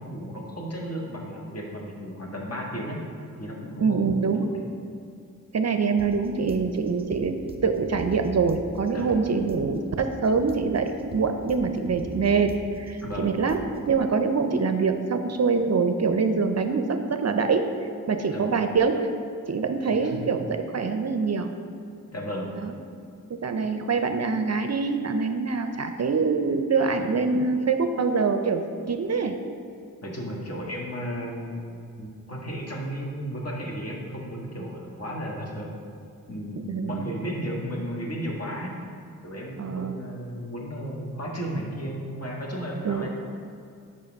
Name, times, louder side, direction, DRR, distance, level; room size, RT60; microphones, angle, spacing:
voice 1, 0.0-3.0 3.4-4.1 4.3-4.6 8.9-9.3 13.0-13.4 14.5-14.6 18.3-18.6 19.9-20.3 22.1-22.6 26.7-26.9 30.0-35.7 36.3-38.7 39.2-43.1, equal, 45° left, -2 dB, 1.7 m, -34 dB
voice 2, 3.8-4.5 5.5-13.6 13.9-17.7 18.1-19.1 19.5-21.5 22.6-22.7 23.3-28.6 28.9-29.4 36.7-37.0 39.6-40.0 42.8-43.1, right 4 dB, 45° right, 7 dB, 0.5 m, -24 dB
sound 1, 6.0-14.0, right 3 dB, 15° right, 0.7 m, -43 dB
5.6 x 5.0 x 5.2 m, 2.4 s
cardioid pair, 45°, 36 cm